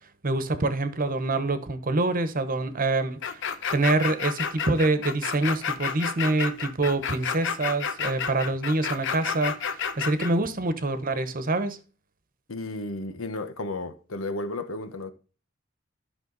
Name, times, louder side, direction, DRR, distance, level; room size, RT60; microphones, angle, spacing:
voice 1, 0.2-3.4 3.7-11.8, right 2 dB, 45° right, 1.1 m, -26 dB
sound 1, 3.2-10.3, left 6 dB, 65° left, 1.0 m, -30 dB
voice 2, 12.5-15.1, left 2 dB, 90° left, 1.2 m, -33 dB
12.0 x 6.1 x 4.0 m
head